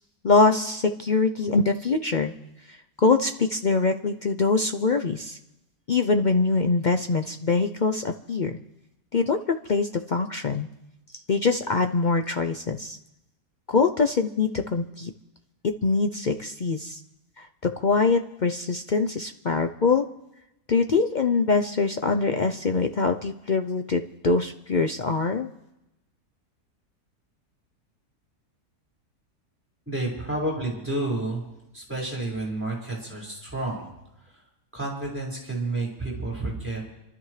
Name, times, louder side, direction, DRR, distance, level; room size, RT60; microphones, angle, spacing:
voice 1, 0.2-2.3 2.7-5.4 5.9-8.6 9.1-10.7 11.3-13.0 13.7-15.1 15.8-17.0 17.4-20.1 20.7-25.5, left 4 dB, 70° left, 6 dB, 0.4 m, -23 dB
voice 2, 29.9-31.4 31.7-33.9 34.7-36.8, right 2 dB, 5° right, -4 dB, 5.2 m, -30 dB
28.0 x 13.0 x 3.3 m, 0.90 s
omnidirectional pair, 1.7 m